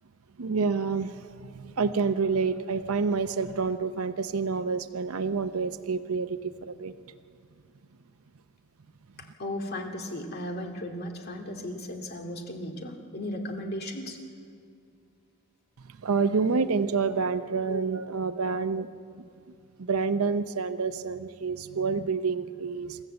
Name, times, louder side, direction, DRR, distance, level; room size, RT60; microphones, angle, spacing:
voice 1, 0.4-6.9 16.0-18.9 19.8-23.0, right 5 dB, 80° right, 11 dB, 0.6 m, -28 dB
voice 2, 9.2-14.2, left 1 dB, 50° left, 2 dB, 2.2 m, -36 dB
27.0 x 14.0 x 7.8 m, 2.4 s
head